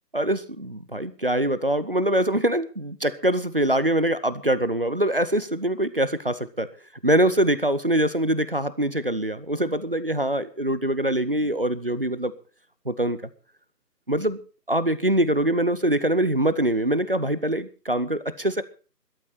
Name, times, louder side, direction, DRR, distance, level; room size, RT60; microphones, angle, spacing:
voice 1, 0.1-6.7 7.0-12.3 12.9-13.3 14.1-14.4 14.7-18.6, right 1 dB, 35° right, 15 dB, 0.7 m, -24 dB
17.0 x 12.5 x 4.4 m, 0.37 s
figure-of-eight pair, 160°, 50 cm